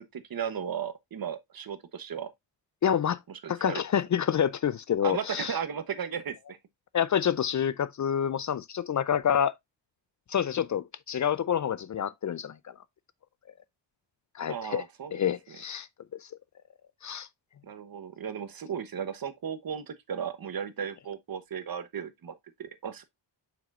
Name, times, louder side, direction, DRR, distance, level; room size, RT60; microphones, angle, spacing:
voice 1, 0.0-2.3 3.3-3.8 5.0-6.6 14.5-15.6 17.6-23.0, right 7 dB, 50° right, 1.1 m, -36 dB
voice 2, 2.8-3.2 3.5-5.6 6.9-9.5 10.3-12.6 14.3-14.8 15.1-15.9 17.0-17.3, left 8 dB, 45° left, 0.4 m, -27 dB
7.2 x 5.9 x 2.4 m
cardioid pair, 75°, 44 cm